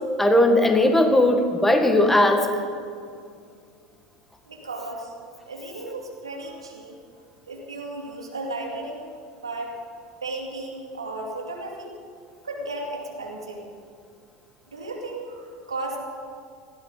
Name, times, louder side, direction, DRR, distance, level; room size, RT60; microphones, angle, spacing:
voice 1, 0.2-2.5, left 1 dB, 10° left, 5 dB, 1.8 m, -18 dB
voice 2, 4.5-5.1 5.5-7.0 7.5-9.0 9.4-9.7 10.2-11.9 12.4-13.6 14.7-16.0, right 2 dB, 90° right, 0 dB, 2.6 m, -34 dB
19.5 x 16.0 x 4.1 m, 2.3 s
hypercardioid pair, 80°, 3 cm